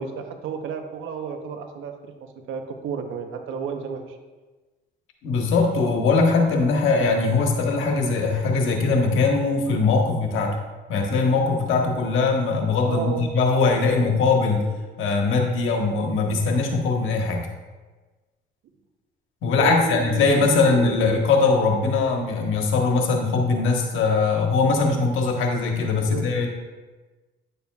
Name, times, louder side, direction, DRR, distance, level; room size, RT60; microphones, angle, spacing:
voice 1, 0.0-4.2 12.9-13.3 19.6-21.0 26.0-26.2, right 6 dB, 85° right, 5 dB, 0.9 m, -32 dB
voice 2, 5.2-10.5 10.9-14.6 15.0-17.4 19.4-26.5, left 4 dB, 85° left, 2 dB, 1.2 m, -21 dB
9.9 x 6.9 x 2.3 m, 1.3 s
cardioid pair, 90°, 20 cm